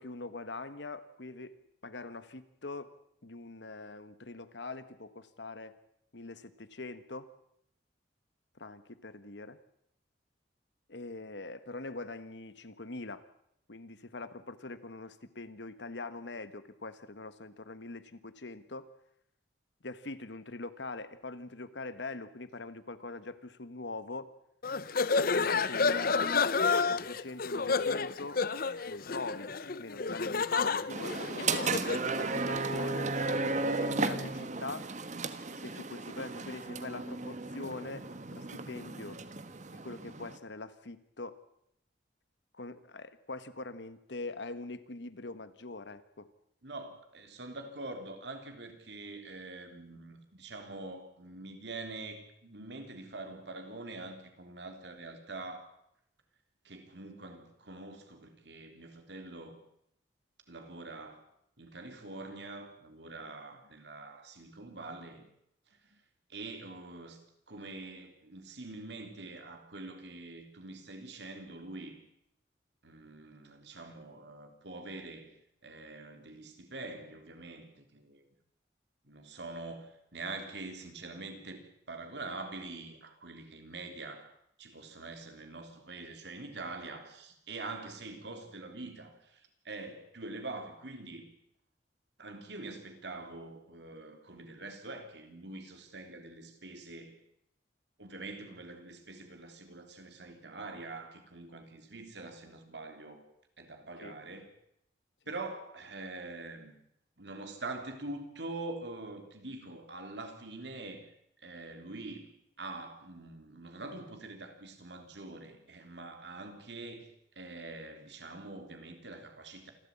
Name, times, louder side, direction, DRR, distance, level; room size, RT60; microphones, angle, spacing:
voice 1, 0.0-3.0 3.2-5.8 6.1-7.3 8.6-9.6 10.9-13.2 13.7-18.9 19.8-24.3 25.3-26.5 26.9-28.4 28.9-29.5 29.8-31.8 32.2-34.9 35.5-39.2 39.8-41.4 42.5-46.3 104.0-104.1, left 3 dB, 75° left, 13 dB, 1.4 m, -43 dB
sound 1, 24.6-32.1, left 4 dB, 55° left, 0.8 m, -30 dB
sound 2, 30.9-40.4, right 3 dB, 40° right, 1.3 m, -35 dB
voice 2, 46.6-55.7 56.6-59.6 60.5-61.2 61.6-65.3 65.7-66.0 66.3-67.2 67.5-72.0 72.8-75.3 75.6-78.2 79.0-84.3 84.6-91.3 92.2-97.1 98.0-103.2 103.6-104.5 105.3-106.7 107.2-111.1 111.4-112.3 112.6-117.1 117.3-119.7, right 2 dB, 70° right, 6 dB, 3.5 m, -44 dB
27.5 x 13.0 x 8.5 m, 0.76 s
head